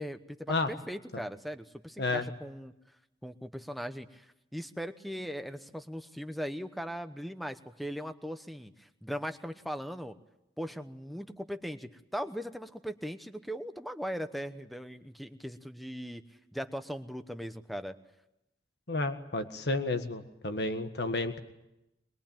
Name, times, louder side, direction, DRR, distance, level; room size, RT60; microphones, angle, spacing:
voice 1, 0.0-2.7 3.2-4.3 4.5-10.2 10.6-16.2 16.5-17.9, equal, ahead, 10 dB, 1.0 m, -39 dB
voice 2, 18.9-21.4, left 2 dB, 70° left, 7 dB, 1.7 m, -31 dB
23.0 x 22.0 x 9.0 m, 0.90 s
head